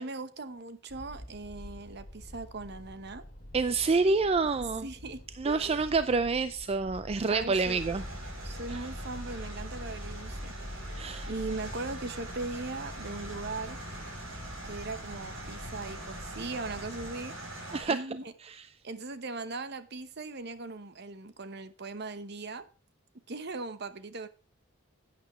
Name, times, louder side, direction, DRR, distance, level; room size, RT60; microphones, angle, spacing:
voice 1, 0.0-3.2 4.8-5.8 7.3-7.8 8.4-10.5 11.3-13.8 14.6-18.3 18.8-22.7 23.3-24.3, right 3 dB, 55° right, 0.9 m, -39 dB
sound 1, 0.9-17.2, equal, 35° left, 2.7 m, -47 dB
voice 2, 3.5-4.9 5.4-8.0 8.7-8.9 11.0-11.3 17.7-18.0 18.4-18.7, right 4 dB, 30° right, 0.4 m, -28 dB
sound 2, 7.6-17.8, equal, 85° right, 5.1 m, -41 dB
11.5 x 8.8 x 3.1 m
head